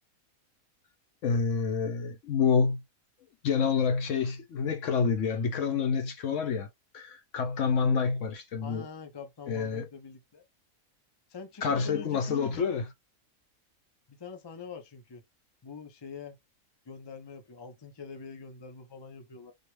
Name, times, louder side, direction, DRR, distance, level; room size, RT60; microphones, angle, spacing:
voice 1, 1.2-2.8 3.4-6.7 6.9-8.8 9.5-9.8 11.6-12.8, left 5 dB, 65° left, 0.9 m, -28 dB
voice 2, 8.6-10.4 11.3-12.7 14.1-15.2 15.6-16.4 16.9-19.5, left 5 dB, 30° left, 0.4 m, -44 dB
4.6 x 2.3 x 3.1 m
omnidirectional pair, 1.5 m